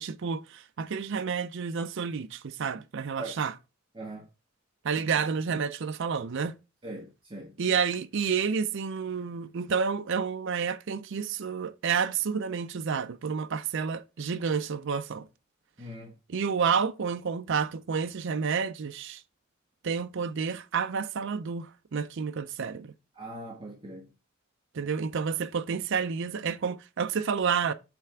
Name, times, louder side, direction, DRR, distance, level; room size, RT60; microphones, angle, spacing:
voice 1, 0.0-3.5 4.8-6.5 7.6-15.3 16.3-19.2 19.8-22.9 24.7-27.7, right 6 dB, 65° right, 0.5 m, -30 dB
voice 2, 3.9-4.2 6.8-7.5 15.8-16.1 23.1-24.1, right 1 dB, 25° right, 1.3 m, -41 dB
8.1 x 3.4 x 5.7 m
head